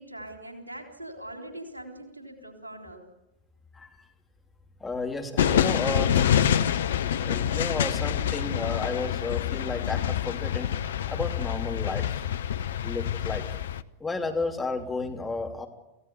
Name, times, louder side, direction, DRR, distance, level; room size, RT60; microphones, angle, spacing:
voice 1, 0.0-3.1, right 1 dB, 80° right, 4 dB, 3.7 m, -42 dB
voice 2, 4.8-6.1 7.2-10.7 11.1-12.1 12.8-13.5 14.0-15.7, left 3 dB, 10° left, 1 dB, 3.2 m, -32 dB
sound 1, 5.4-13.8, left 9 dB, 60° left, 0.7 m, -26 dB
28.0 x 16.0 x 8.2 m, 0.93 s
figure-of-eight pair, 90°, 0 cm